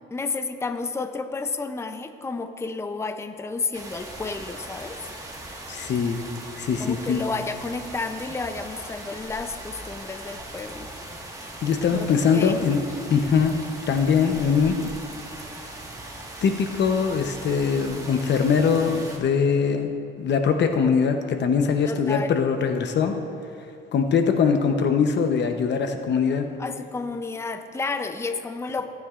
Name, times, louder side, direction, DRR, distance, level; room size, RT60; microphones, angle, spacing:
voice 1, 0.1-5.0 6.8-10.9 11.9-12.1 12.3-12.6 21.9-22.3 26.6-28.9, left 4 dB, 15° left, 9 dB, 0.5 m, -31 dB
sound 1, 3.7-19.2, right 1 dB, 15° right, 1.6 m, -39 dB
voice 2, 5.7-6.2 6.6-7.2 11.6-13.6 13.9-14.8 16.4-19.9 20.2-23.2 23.9-26.5, left 6 dB, 60° left, 6 dB, 0.8 m, -22 dB
17.5 x 9.4 x 2.5 m, 2.5 s
cardioid pair, 90°, 20 cm